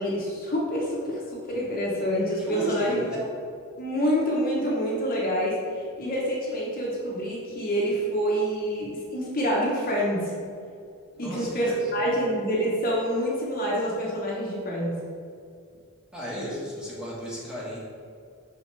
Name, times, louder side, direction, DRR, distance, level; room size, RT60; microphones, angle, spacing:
voice 1, 0.0-3.3 3.8-10.3 11.2-15.0, equal, 40° left, -4 dB, 1.0 m, -27 dB
voice 2, 2.4-3.2 11.1-11.5 11.9-12.1 16.1-17.8, equal, 5° right, -7 dB, 1.4 m, -34 dB
6.2 x 4.9 x 3.3 m, 2.3 s
head